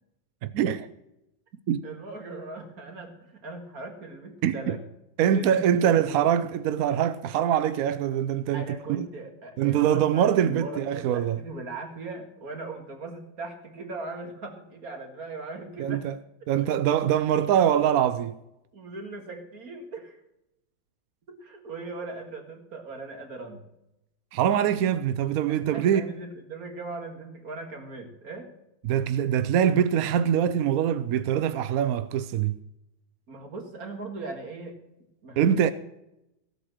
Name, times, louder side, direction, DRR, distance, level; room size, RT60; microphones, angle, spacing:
voice 1, 0.4-0.9 1.7-1.8 4.4-4.8 5.2-9.1 9.6-11.4 15.8-16.2 16.5-18.4 24.3-26.1 28.8-32.6 35.4-35.7, right 9 dB, 70° right, 0.9 m, -24 dB
voice 2, 1.8-4.8 5.3-6.2 8.5-16.1 18.7-20.2 21.3-23.7 25.4-28.5 33.3-34.8 35.2-35.7, right 2 dB, 50° right, 2.4 m, -39 dB
15.5 x 8.1 x 6.2 m
omnidirectional pair, 2.0 m